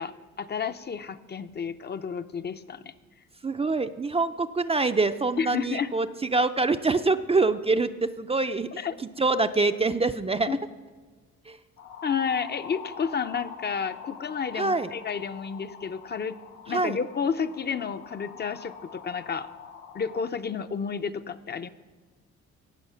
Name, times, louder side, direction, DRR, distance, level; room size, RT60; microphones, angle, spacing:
voice 1, 0.0-2.9 5.4-5.9 8.8-9.0 10.5-10.6 12.0-16.4 16.7-19.5 19.9-21.7, left 6 dB, 35° left, 11 dB, 0.5 m, -31 dB
voice 2, 3.4-6.1 6.3-8.8 9.2-10.6 11.5-11.6 14.6-14.9 16.7-17.0, right 3 dB, 20° right, 9 dB, 0.4 m, -25 dB
sound 1, 11.8-20.3, left 7 dB, 85° left, 1.9 m, -45 dB
17.5 x 6.4 x 5.6 m, 1.4 s
cardioid pair, 90°, 30 cm